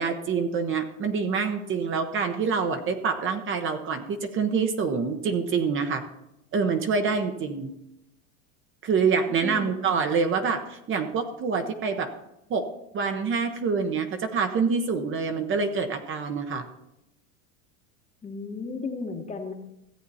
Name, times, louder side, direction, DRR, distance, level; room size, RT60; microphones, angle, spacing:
voice 1, 0.0-6.0 6.5-7.7 8.8-12.1 12.5-12.7 12.9-16.7, right 5 dB, 30° right, 6 dB, 0.9 m, -26 dB
voice 2, 9.4-10.1 18.2-19.5, left 4 dB, 15° left, 4 dB, 1.2 m, -35 dB
14.5 x 8.3 x 4.2 m, 0.86 s
supercardioid pair, 130°, 40 cm